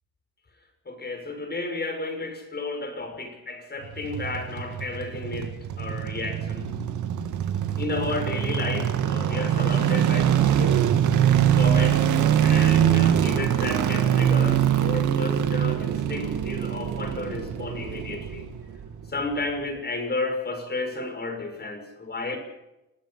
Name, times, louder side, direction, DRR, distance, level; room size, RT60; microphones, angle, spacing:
voice 1, 0.9-6.7 7.8-11.0 11.5-12.1 12.4-18.4 19.1-22.4, left 3 dB, 35° left, 6 dB, 6.7 m, -32 dB
sound 1, 3.8-19.1 19.3-19.4, right 10 dB, 75° right, 2.3 m, -23 dB
29.5 x 19.5 x 5.9 m, 0.95 s
cardioid pair, 90°, 30 cm